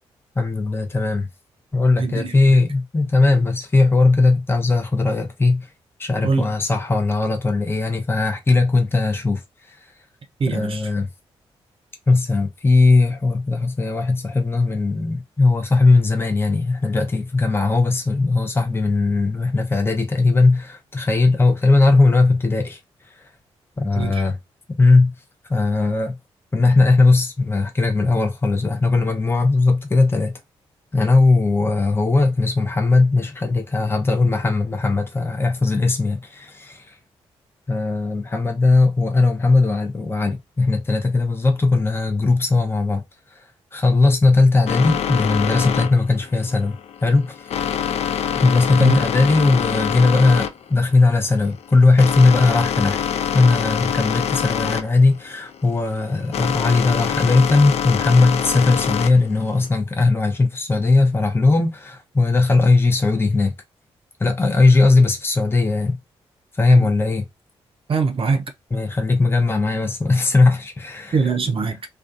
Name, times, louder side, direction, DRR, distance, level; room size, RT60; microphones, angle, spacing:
voice 1, 0.4-1.3 1.7-5.7 6.0-9.4 9.7-9.8 10.5-11.1 12.1-22.8 23.8-24.4 24.8-25.1 25.5-26.2 26.5-30.4 30.9-36.9 37.7-43.0 43.3-43.4 43.7-47.5 48.3-53.1 53.3-63.5 64.2-66.0 66.6-67.3 68.7-71.2, left 3 dB, 20° left, 0.7 m, -18 dB
voice 2, 2.0-2.6 6.2-6.5 10.4-10.8 23.9-24.2 48.8-49.0 66.7-66.9 67.9-68.4 71.1-71.8, right 4 dB, 50° right, 0.6 m, -22 dB
sound 1, 44.7-59.7, left 8 dB, 60° left, 0.4 m, -25 dB
2.4 x 2.3 x 2.5 m
hypercardioid pair, 40°, 12 cm